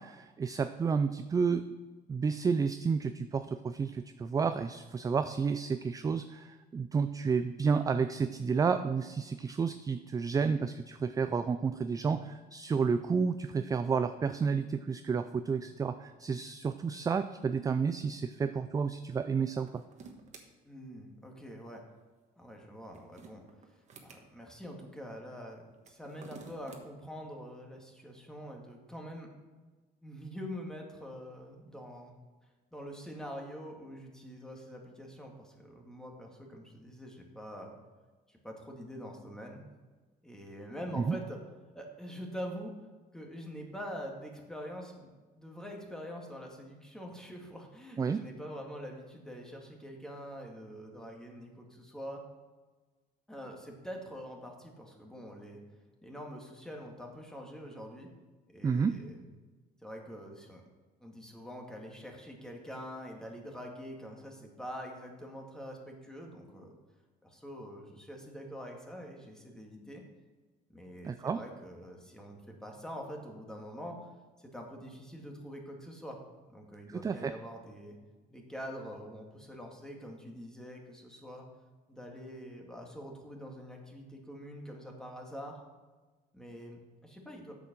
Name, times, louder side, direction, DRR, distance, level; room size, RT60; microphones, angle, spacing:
voice 1, 0.0-1.7 2.1-19.8 41.0-41.2 48.0-48.2 58.6-59.0 71.0-71.4 76.9-77.3, right 5 dB, 20° right, 10 dB, 0.3 m, -31 dB
sound 1, 19.5-20.5 22.7-24.2 25.7-26.8, right 5 dB, 45° right, 1.3 m, -52 dB
voice 2, 20.6-21.8 22.4-23.4 24.0-29.3 30.0-32.1 32.7-37.7 38.3-39.6 40.2-41.4 41.7-42.8 43.1-45.1 45.4-52.2 53.3-55.6 56.0-58.1 58.5-59.2 59.8-60.6 61.0-66.8 67.2-70.0 70.7-74.1 74.4-76.2 76.5-78.0 78.3-81.4 81.9-85.6 86.3-87.6, equal, 5° left, 1 dB, 1.9 m, -45 dB
8.2 x 7.0 x 6.0 m, 1.3 s
cardioid pair, 110°, 17 cm